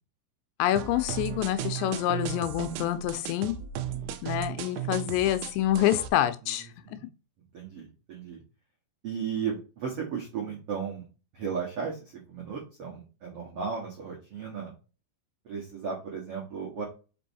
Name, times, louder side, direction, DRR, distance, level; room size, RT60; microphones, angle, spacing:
voice 1, 0.6-3.5 4.2-6.7, left 13 dB, 90° left, 2.9 m, -27 dB
sound 1, 0.8-6.1, right 10 dB, 80° right, 2.3 m, -35 dB
voice 2, 6.4-7.1 7.5-8.4 9.0-11.1 11.3-14.7 15.4-16.8, right 6 dB, 65° right, 1.5 m, -35 dB
5.5 x 5.4 x 4.1 m
omnidirectional pair, 5.1 m